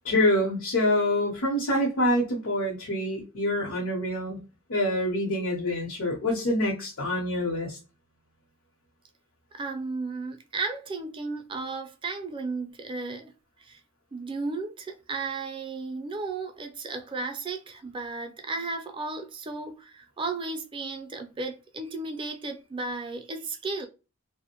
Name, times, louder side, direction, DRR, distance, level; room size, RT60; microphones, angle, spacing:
voice 1, 0.0-4.4 4.7-7.8, left 1 dB, 90° left, 0.8 m, -26 dB
voice 2, 9.5-13.3 13.6-13.8 14.1-23.9, right 3 dB, 25° right, 0.4 m, -34 dB
2.5 x 2.0 x 2.8 m
head